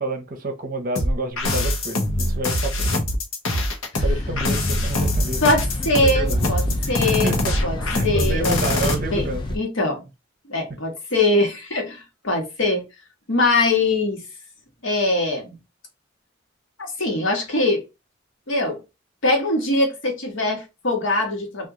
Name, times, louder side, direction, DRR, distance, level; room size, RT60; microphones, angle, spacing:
voice 1, 0.0-2.9 4.0-5.4 6.1-6.5 6.8-7.5 7.9-9.4, right 2 dB, 45° right, 0.6 m, -29 dB
sound 1, 1.0-8.9, left 1 dB, 90° left, 0.8 m, -23 dB
sound 2, 3.9-9.6, left 1 dB, 20° left, 0.4 m, -29 dB
voice 2, 5.4-7.4 7.6-7.8 8.0-9.2 9.5-10.1 10.5-12.8 13.3-14.2 14.8-15.6 17.0-17.8 18.5-18.8 19.2-21.7, left 2 dB, 70° left, 1.2 m, -22 dB
2.9 x 2.4 x 3.6 m
head